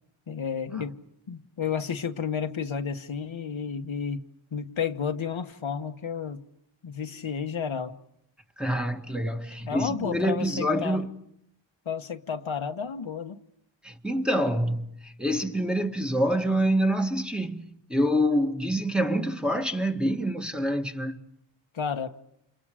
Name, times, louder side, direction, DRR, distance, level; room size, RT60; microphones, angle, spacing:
voice 1, 0.3-1.0 1.3-4.2 4.5-6.4 6.8-7.9 9.7-11.0 11.8-13.4 21.7-22.1, left 6 dB, 80° left, 1.5 m, -31 dB
voice 2, 8.6-11.1 13.8-21.2, equal, ahead, 2.1 m, -26 dB
30.0 x 28.5 x 5.0 m
wide cardioid pair, 90°, 46 cm